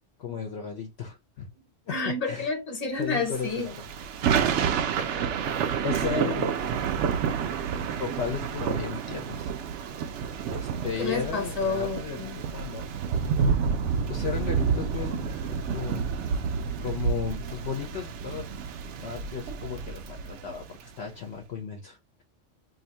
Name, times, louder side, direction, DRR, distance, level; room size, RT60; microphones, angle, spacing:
voice 1, 0.2-1.5 1.9-2.0 2.2-2.5 3.0-3.8 5.8-6.5 8.0-9.5 10.5-12.9 13.3-16.1 16.8-18.5 19.0-22.2, left 7 dB, 65° left, 0.9 m, -35 dB
voice 2, 1.5-3.7 10.8-12.4, left 4 dB, 35° left, 1.1 m, -30 dB
Thunder / Rain, 3.3-20.9, right 6 dB, 75° right, 0.9 m, -29 dB
2.7 x 2.6 x 4.2 m
omnidirectional pair, 1.2 m